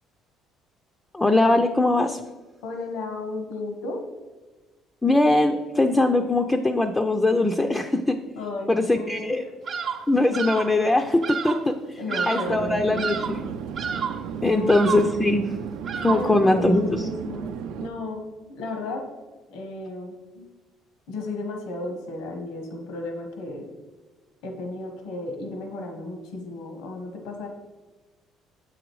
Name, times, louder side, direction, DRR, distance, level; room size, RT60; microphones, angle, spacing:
voice 1, 1.1-2.2 5.0-8.2 8.7-9.4 10.1-12.0 12.3-13.5 14.4-15.5 16.0-17.1, left 2 dB, 10° left, 5 dB, 0.4 m, -21 dB
voice 2, 2.6-4.0 8.4-9.3 12.0-13.1 14.4-14.8 16.1-19.1 19.5-20.5 21.1-23.7 24.4-27.5, left 2 dB, 90° left, 3 dB, 1.3 m, -34 dB
Bird vocalization bird call bird song, 9.7-10.1 10.3-10.8 11.2-11.7 12.1-12.6 12.9-13.4 13.8-14.3 14.7-15.2 15.8-16.4, right 6 dB, 40° right, 0.6 m, -30 dB
Chatter / Fixed-wing aircraft airplane, 12.5-17.9, right 8 dB, 80° right, 0.5 m, -34 dB
7.7 x 5.0 x 4.6 m, 1.2 s
cardioid pair, 150°, 0 cm